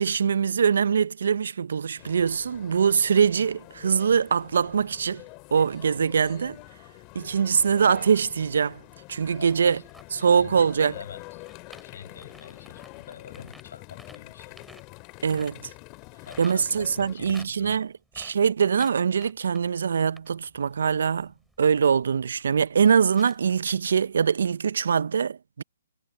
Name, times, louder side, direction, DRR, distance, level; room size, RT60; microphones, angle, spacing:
voice 1, 0.0-5.2 5.5-6.6 7.1-8.8 9.1-9.8 10.1-10.9 15.2-15.7 16.4-21.3 21.6-25.6, right 6 dB, 65° right, 0.6 m, -23 dB
sound 1, 2.0-17.2, left 26 dB, 25° left, 2.3 m, -46 dB
voice 2, 9.3-9.8 10.2-11.4 11.8-14.6 16.3-17.8, left 7 dB, 65° left, 7.1 m, -45 dB
sound 2, 9.3-16.6 16.8-23.9 24.3-24.4, right 1 dB, ahead, 4.4 m, -53 dB
hypercardioid pair, 145°, 0 cm